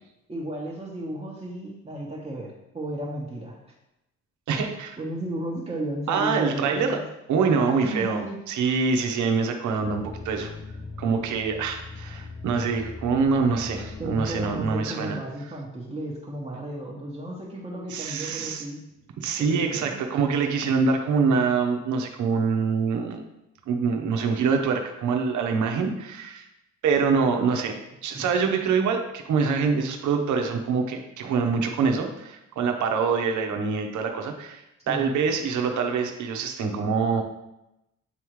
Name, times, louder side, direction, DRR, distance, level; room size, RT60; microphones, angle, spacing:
voice 1, 0.3-3.6 5.0-7.0 7.8-8.4 14.0-18.8 19.4-20.0 28.1-28.3 34.8-35.1, right 1 dB, 20° right, -3 dB, 1.1 m, -33 dB
voice 2, 4.5-5.0 6.1-7.0 7.3-10.5 11.0-15.2 17.9-18.6 19.2-23.2 23.7-26.5 26.8-27.8 28.0-37.2, right 5 dB, 75° right, 4 dB, 0.9 m, -25 dB
sound 1, 9.8-14.9, left 4 dB, 20° left, 0.5 m, -39 dB
9.0 x 3.6 x 3.1 m, 0.90 s
cardioid pair, 90°, 30 cm